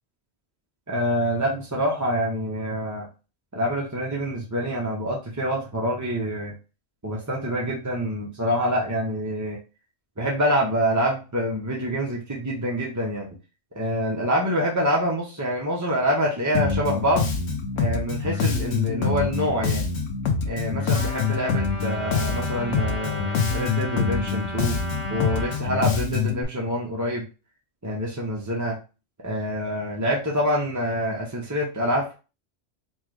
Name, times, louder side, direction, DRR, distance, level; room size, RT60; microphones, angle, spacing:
voice 1, 0.9-3.1 3.5-6.5 7.0-9.6 10.2-13.3 13.8-17.3 17.8-19.9 20.4-24.8 25.1-27.3 27.8-28.8 29.2-32.1, equal, 20° right, -3 dB, 0.6 m, -26 dB
Bass guitar, 16.5-26.4, left 5 dB, 85° left, 1.2 m, -25 dB
Trumpet, 20.9-25.6, left 1 dB, 65° right, 1.6 m, -35 dB
4.3 x 2.3 x 4.7 m, 0.32 s
omnidirectional pair, 1.3 m